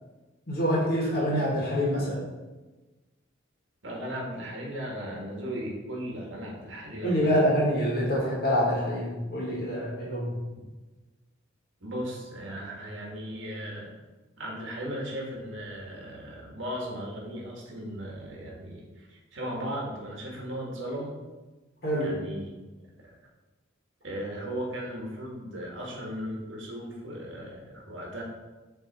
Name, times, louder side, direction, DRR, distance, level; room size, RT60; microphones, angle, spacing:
voice 1, 0.5-2.2 7.0-10.4 21.8-22.2, equal, 50° left, -4 dB, 1.8 m, -26 dB
voice 2, 3.8-7.3 11.8-13.9 14.4-21.2 22.0-22.5 23.0-23.1 24.0-28.2, equal, 70° right, -2 dB, 1.6 m, -37 dB
6.7 x 3.4 x 4.2 m, 1.2 s
head